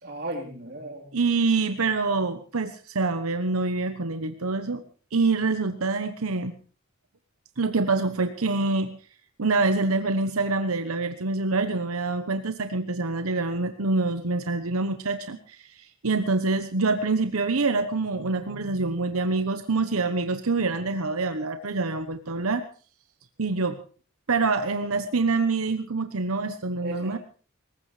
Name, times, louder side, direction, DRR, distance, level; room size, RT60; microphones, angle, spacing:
voice 1, 0.0-1.1 26.8-27.2, right 1 dB, 50° right, 1 dB, 3.9 m, -35 dB
voice 2, 1.1-4.8 5.1-6.5 7.6-8.9 9.4-22.6 23.4-23.8 24.3-27.2, right 3 dB, 85° right, 8 dB, 1.0 m, -26 dB
21.5 x 19.0 x 3.3 m, 0.41 s
head